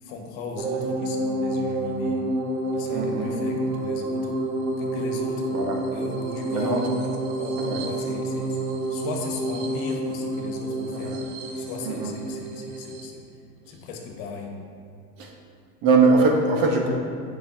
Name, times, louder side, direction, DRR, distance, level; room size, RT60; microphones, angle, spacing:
voice 1, 0.0-2.3 2.7-4.3 4.8-5.5 5.9-6.9 7.3-8.6 8.9-11.2 11.5-13.2 13.7-14.6, left 4 dB, 70° left, 1 dB, 1.2 m, -36 dB
sound 1, 0.6-13.1, right 1 dB, 65° right, 1.0 m, -29 dB
voice 2, 2.9-3.4 5.5-5.8 6.5-6.8 7.6-7.8 10.9-11.2 11.8-12.1 15.2-15.3 15.8-16.9, right 3 dB, 50° right, 0 dB, 1.2 m, -22 dB
7.9 x 5.6 x 2.9 m, 2.3 s
supercardioid pair, 110°, 44 cm